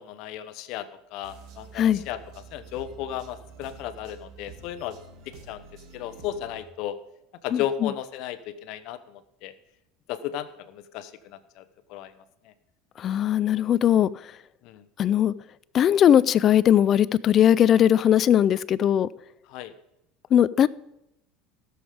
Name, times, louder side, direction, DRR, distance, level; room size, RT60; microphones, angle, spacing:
voice 1, 0.0-2.2 2.5-5.0 5.3-5.6 5.9-7.0 7.4-9.5 10.1-11.6 11.9-12.1 12.4-12.5 14.6-14.8 19.5-19.7, left 11 dB, 65° left, 13 dB, 0.9 m, -34 dB
sound 1, 1.2-6.6, right 5 dB, 60° right, 2.2 m, -48 dB
voice 2, 7.5-7.9 13.0-14.1 15.0-15.3 15.7-19.1 20.3-20.7, left 10 dB, 40° left, 19 dB, 0.4 m, -19 dB
16.5 x 7.1 x 5.1 m, 0.86 s
supercardioid pair, 115°, 0 cm